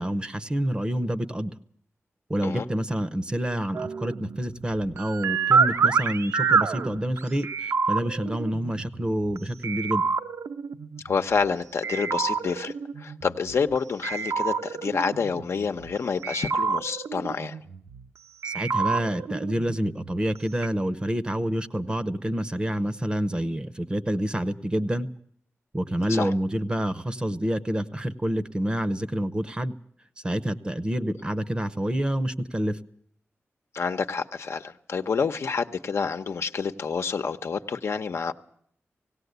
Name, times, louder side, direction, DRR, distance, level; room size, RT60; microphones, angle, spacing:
voice 1, 0.0-1.6 2.3-10.0 18.4-25.1 25.7-29.7 30.2-32.8, right 1 dB, 20° right, 13 dB, 0.7 m, -28 dB
sound 1, 3.7-9.4 9.6-11.5 11.8-13.8 14.0-16.0 16.2-18.1 18.4-20.4 20.6-20.7, right 5 dB, 85° right, 0.9 m, -28 dB
voice 2, 11.0-17.6 26.1-26.3 33.7-38.3, left 5 dB, 70° left, 7 dB, 0.9 m, -28 dB
18.0 x 17.5 x 8.1 m, 0.65 s
wide cardioid pair, 170°, 5 cm